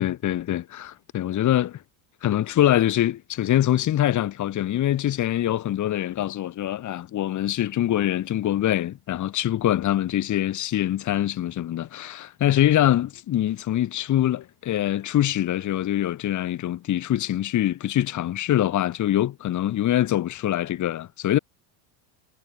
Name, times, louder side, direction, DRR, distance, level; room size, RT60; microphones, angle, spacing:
voice 1, 0.0-1.8 2.2-21.4, left 12 dB, 35° left, 2.3 m, -24 dB
cardioid pair, 150°, 49 cm